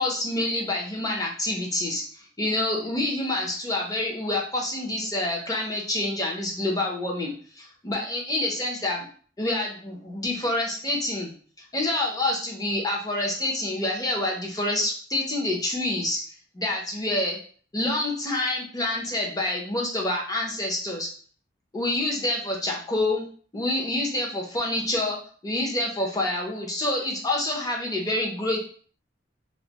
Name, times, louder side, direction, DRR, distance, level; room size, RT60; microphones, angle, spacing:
voice 1, 0.0-9.1 9.4-11.3 11.7-16.2 16.5-17.4 17.7-21.1 21.7-23.3 23.5-25.2 25.4-28.7, left 1 dB, 20° left, -1 dB, 0.7 m, -27 dB
3.1 x 2.0 x 3.0 m, 0.44 s
head